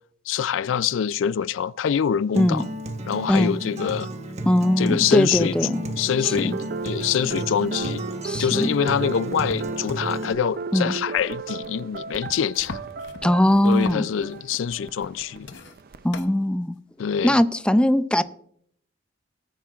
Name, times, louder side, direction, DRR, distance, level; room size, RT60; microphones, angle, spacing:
voice 1, 0.3-2.6 3.1-4.1 4.8-5.5 6.0-6.6 6.8-8.0 8.4-12.8 13.6-15.5 17.0-17.4, left 8 dB, 85° left, 0.4 m, -25 dB
Acoustic guitar, 2.3-10.3, right 1 dB, 35° right, 1.1 m, -33 dB
voice 2, 4.5-5.8 6.2-6.6 8.2-8.7 10.7-10.9 13.2-14.1 16.0-16.8 17.2-18.2, left 1 dB, 5° left, 0.4 m, -20 dB
sound 1, 6.2-16.0, right 4 dB, 50° right, 0.5 m, -35 dB
sound 2, 12.2-14.5 14.9-15.1 15.4-16.3 17.4-17.5, left 3 dB, 65° left, 0.8 m, -39 dB
18.5 x 9.5 x 2.4 m
head